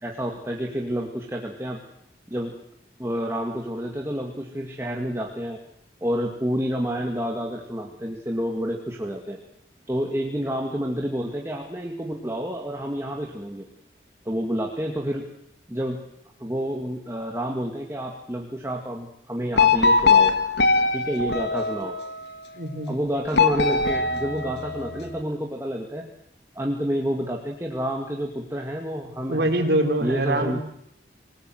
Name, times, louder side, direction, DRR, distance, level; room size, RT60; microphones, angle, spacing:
voice 1, 0.0-1.8 2.3-2.5 3.0-5.6 6.0-9.4 9.9-13.7 14.3-15.2 15.7-16.0 16.4-20.3 20.9-22.0 22.9-26.0 26.6-29.5 30.0-30.6, equal, 15° right, 1 dB, 2.0 m, -29 dB
sound 1, 19.6-22.2 23.3-25.1, left 4 dB, 80° left, 2.0 m, -21 dB
voice 2, 22.5-22.9 29.3-30.6, right 1 dB, 75° right, 4 dB, 3.9 m, -24 dB
27.0 x 19.0 x 7.8 m, 0.75 s
head